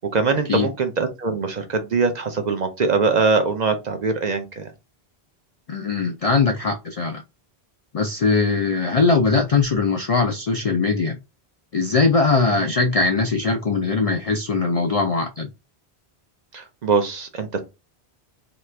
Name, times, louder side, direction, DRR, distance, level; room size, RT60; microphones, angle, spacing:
voice 1, 0.1-4.7 16.5-17.6, right 4 dB, 50° right, 0.6 m, -22 dB
voice 2, 5.7-7.2 7.9-11.2 11.7-15.5, left 4 dB, 60° left, 0.3 m, -21 dB
2.9 x 2.4 x 3.2 m
omnidirectional pair, 1.1 m